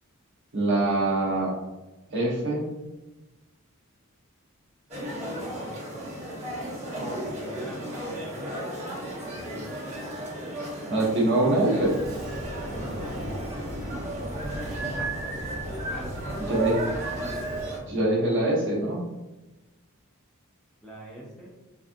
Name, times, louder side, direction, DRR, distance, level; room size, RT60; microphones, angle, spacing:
voice 1, 0.5-1.5 2.1-2.7 10.9-12.0 16.4-16.8 17.9-19.0, right 2 dB, 55° right, -3 dB, 0.7 m, -24 dB
sound 1, 4.9-17.8, right 1 dB, 30° right, 1.2 m, -34 dB
voice 2, 7.0-8.3 9.2-9.7 12.8-13.3 14.8-15.1 15.9-16.7 17.2-17.6 20.8-21.5, right 1 dB, ahead, -5 dB, 0.5 m, -42 dB
Sliding door, 11.8-17.7, equal, 75° right, 0.9 m, -38 dB
3.5 x 2.4 x 2.6 m, 1.1 s
head